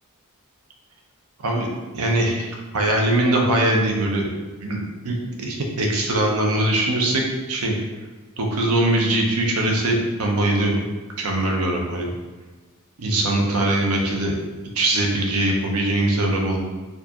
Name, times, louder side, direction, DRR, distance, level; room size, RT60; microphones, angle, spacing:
voice 1, 1.9-2.5 2.7-4.3 4.6-4.8 5.0-7.2 7.5-7.7 8.4-10.8 11.2-12.1 13.0-14.3 14.7-16.6, right 1 dB, 85° right, 0 dB, 0.7 m, -21 dB
4.4 x 2.5 x 2.9 m, 1.3 s
head